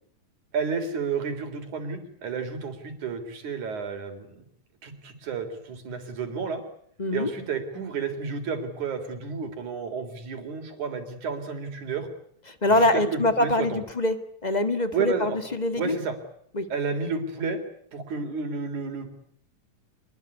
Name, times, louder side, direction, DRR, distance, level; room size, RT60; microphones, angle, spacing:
voice 1, 0.5-4.4 4.8-6.6 7.1-12.1 12.7-13.8 14.9-15.4 15.8-16.1 16.7-17.6 17.9-19.1, right 5 dB, 85° right, 7 dB, 4.9 m, -31 dB
voice 2, 7.0-7.3 12.6-14.2 14.4-16.0 16.5-16.7, left 1 dB, 20° left, 10 dB, 1.1 m, -24 dB
26.0 x 21.0 x 9.7 m, 0.67 s
omnidirectional pair, 3.3 m